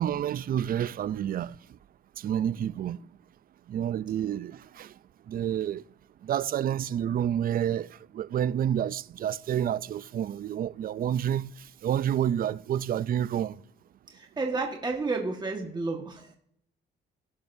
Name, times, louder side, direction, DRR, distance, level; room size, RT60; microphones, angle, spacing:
voice 1, 0.0-1.5 2.2-3.0 3.7-4.9 5.3-5.8 6.2-7.9 8.1-11.5 11.8-13.5, right 10 dB, 45° right, 0.4 m, -29 dB
voice 2, 14.1-16.3, right 3 dB, 20° right, 1.5 m, -31 dB
17.5 x 6.8 x 2.7 m
cardioid pair, 90°, 20 cm